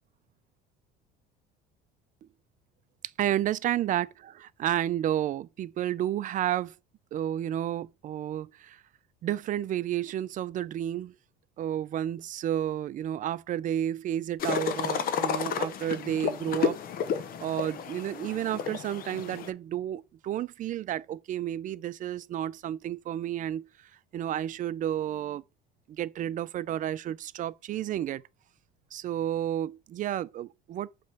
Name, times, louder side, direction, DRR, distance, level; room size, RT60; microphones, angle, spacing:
voice 1, 3.2-6.7 7.1-8.8 9.2-11.1 11.6-16.8 17.4-23.7 24.1-25.4 25.9-28.2 28.9-30.9, right 11 dB, 40° right, 0.5 m, -31 dB
sound 1, 14.4-19.5, left 7 dB, 45° left, 0.9 m, -31 dB
7.4 x 3.2 x 5.9 m
cardioid pair, 120°, 20 cm